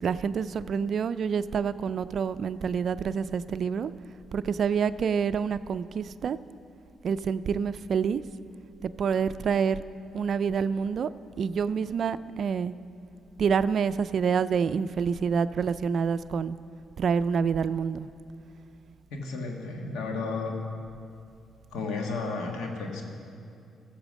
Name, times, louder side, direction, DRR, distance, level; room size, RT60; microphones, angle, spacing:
voice 1, 0.0-3.9 4.3-6.4 7.0-8.2 8.8-9.8 10.1-11.1 11.4-12.7 13.4-16.6 17.0-18.1, right 6 dB, 60° right, 14 dB, 0.4 m, -27 dB
voice 2, 19.1-20.5 21.7-23.0, left 3 dB, 85° left, 2 dB, 1.6 m, -33 dB
15.0 x 7.0 x 6.3 m, 2.5 s
supercardioid pair, 70°, 0 cm